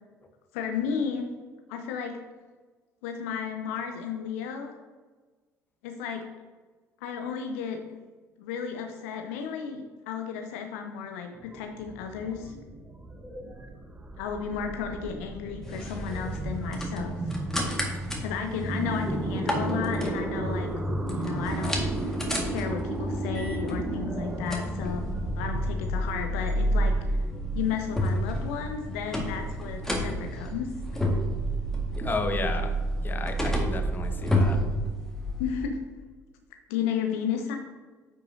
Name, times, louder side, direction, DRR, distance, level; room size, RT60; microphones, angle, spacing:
voice 1, 0.5-1.3 1.7-2.2 3.0-4.7 5.8-6.2 7.0-8.0 8.4-12.5 14.2-17.3 18.2-20.7 21.1-25.0 25.4-26.9 27.5-30.7 35.4-35.8 36.7-37.6, left 7 dB, 65° left, 5 dB, 0.6 m, -33 dB
sound 1, 11.3-29.1, right 2 dB, 20° right, 1.1 m, -35 dB
sound 2, 15.6-35.5, equal, 5° left, 1.7 m, -30 dB
voice 2, 32.0-32.8 33.0-34.6, left 3 dB, 25° left, 5 dB, 1.0 m, -32 dB
9.4 x 5.5 x 2.7 m, 1.4 s
figure-of-eight pair, 55°, 8 cm